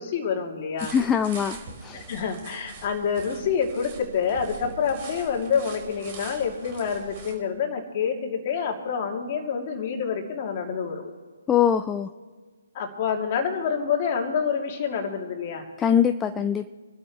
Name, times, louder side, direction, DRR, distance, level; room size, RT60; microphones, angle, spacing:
voice 1, 0.0-0.9 1.9-11.1 12.7-15.7, left 6 dB, 35° left, 1 dB, 2.8 m, -27 dB
sound 1, 0.8-7.3, right 4 dB, 30° right, 4.1 m, -43 dB
voice 2, 0.9-1.6 1.8-2.1 11.5-12.1 15.8-16.7, left 8 dB, 10° left, 9 dB, 0.4 m, -22 dB
27.0 x 12.0 x 3.2 m, 1.5 s
figure-of-eight pair, 135°, 0 cm